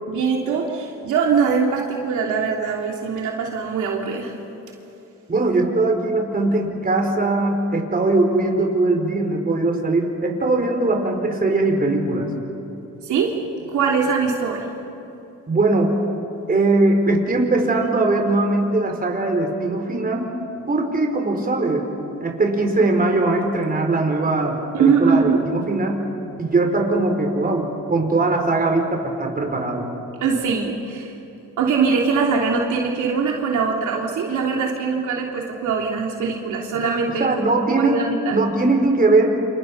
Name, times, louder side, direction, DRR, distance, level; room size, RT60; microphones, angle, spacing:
voice 1, 0.1-4.3 13.0-14.7 24.7-25.4 25.7-25.9 26.3-26.5 30.2-31.1 31.6-38.4, right 5 dB, 75° right, -1 dB, 3.1 m, -22 dB
voice 2, 5.3-12.3 15.5-16.0 16.5-20.3 20.7-21.9 22.2-26.0 26.4-29.9 37.2-38.0 38.3-39.4, right 2 dB, 30° right, 2 dB, 4.8 m, -20 dB
29.0 x 27.5 x 5.6 m, 2.9 s
cardioid pair, 90°, 30 cm